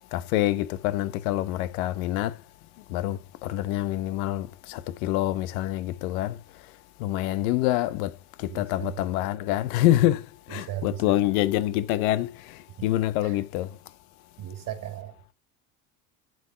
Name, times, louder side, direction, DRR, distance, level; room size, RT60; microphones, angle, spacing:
voice 1, 0.1-2.4 2.9-6.4 7.0-13.8, left 14 dB, 75° left, 0.9 m, -26 dB
voice 2, 8.4-9.0 10.6-11.3 12.8-12.9 13.2-13.4 14.4-15.2, right 11 dB, 45° right, 2.3 m, -36 dB
7.2 x 5.2 x 6.8 m
supercardioid pair, 90°, 43 cm